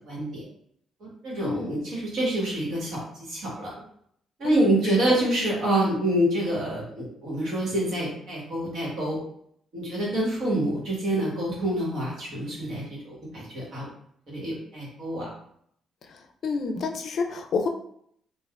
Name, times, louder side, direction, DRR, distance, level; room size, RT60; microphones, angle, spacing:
voice 1, 0.1-0.4 1.0-3.7 4.4-9.2 9.7-13.8 14.3-15.3, right 1 dB, 65° right, -4 dB, 1.5 m, -27 dB
voice 2, 1.4-1.7 4.4-4.7 16.1-17.7, left 4 dB, 60° left, 4 dB, 0.4 m, -29 dB
3.3 x 2.5 x 2.4 m, 0.67 s
cardioid pair, 90°, 0 cm